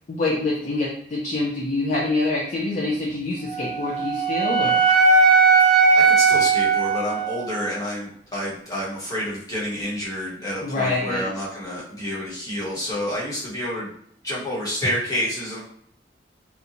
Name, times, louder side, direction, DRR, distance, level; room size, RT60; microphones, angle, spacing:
voice 1, 0.1-4.8 10.6-11.3, left 2 dB, 45° left, -5 dB, 0.4 m, -25 dB
Wind instrument woodwind instrument, 3.5-7.7, right 4 dB, 25° right, 0.6 m, -18 dB
voice 2, 6.0-13.9 14.2-15.6, equal, 20° left, -7 dB, 1.0 m, -29 dB
2.8 x 2.2 x 2.6 m, 0.65 s
head